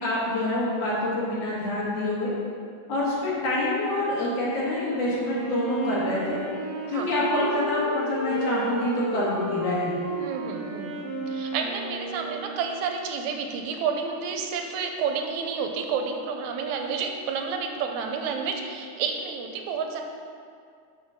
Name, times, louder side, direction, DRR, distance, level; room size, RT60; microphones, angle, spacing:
voice 1, 0.0-2.3 2.9-6.4 6.9-9.9, left 1 dB, 60° left, -7 dB, 2.7 m, -26 dB
Wind instrument woodwind instrument, 5.1-12.8, right 2 dB, 60° right, 1.0 m, -32 dB
voice 2, 10.2-11.0 11.3-20.0, right 5 dB, 85° right, 3 dB, 2.0 m, -30 dB
6.3 x 5.7 x 6.3 m, 2.3 s
omnidirectional pair, 3.4 m